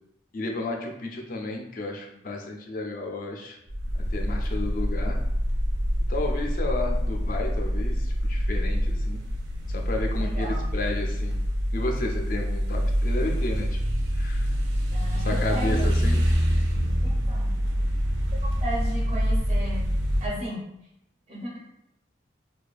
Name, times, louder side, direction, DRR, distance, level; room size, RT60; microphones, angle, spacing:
voice 1, 0.3-3.6 4.1-5.2 6.1-9.2 9.7-11.4 11.7-13.8 14.2-14.5 15.1-16.2, left 2 dB, 45° left, 2 dB, 0.3 m, -32 dB
sound 1, 3.7-20.3, equal, 80° right, 0.5 m, -26 dB
voice 2, 10.2-10.7 14.9-15.9 17.0-17.4 18.6-19.9 20.2-20.7 21.3-21.5, equal, 30° right, -6 dB, 0.5 m, -34 dB
2.4 x 2.2 x 2.3 m, 0.79 s
head